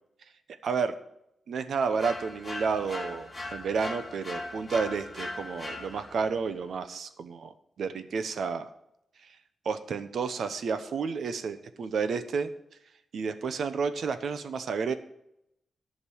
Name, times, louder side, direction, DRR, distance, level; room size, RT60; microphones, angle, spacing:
voice 1, 0.6-0.9 1.5-8.7 9.6-12.5 13.1-14.9, right 5 dB, 65° right, 10 dB, 0.9 m, -31 dB
sound 1, 2.0-6.3, left 2 dB, 20° left, 3.0 m, -39 dB
11.5 x 5.3 x 8.5 m, 0.80 s
wide cardioid pair, 145°, 0 cm